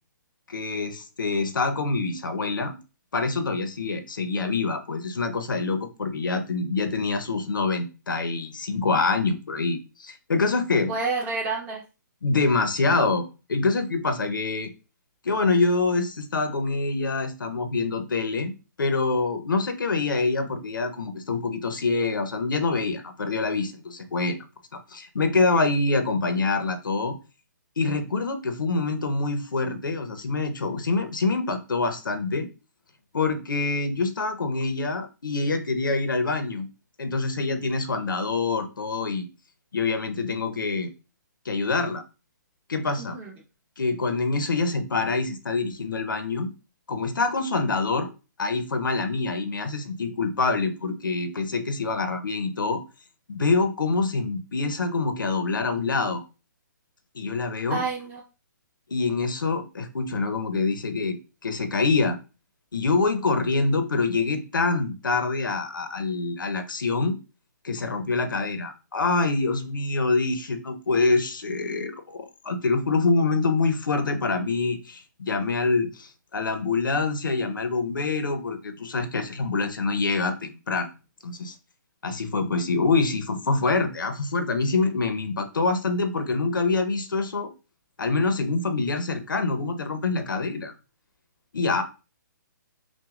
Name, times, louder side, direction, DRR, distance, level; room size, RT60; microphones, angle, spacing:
voice 1, 0.5-2.8 3.1-10.9 12.2-14.7 15.2-18.5 18.8-24.4 24.9-27.1 27.8-32.5 33.1-36.7 37.0-39.3 39.7-40.9 41.4-42.0 42.7-43.2 43.8-46.5 46.9-48.1 48.4-52.8 53.3-56.2 57.1-57.8 58.9-62.2 62.7-67.2 67.6-80.9 81.2-81.6 82.0-87.5 88.0-90.7 91.5-91.8, left 3 dB, 90° left, 8 dB, 0.9 m, -25 dB
voice 2, 10.9-11.8 43.0-43.3 57.7-58.2, right 4 dB, 15° right, -3 dB, 1.3 m, -29 dB
6.1 x 2.4 x 2.4 m, 0.31 s
hypercardioid pair, 150°, 11 cm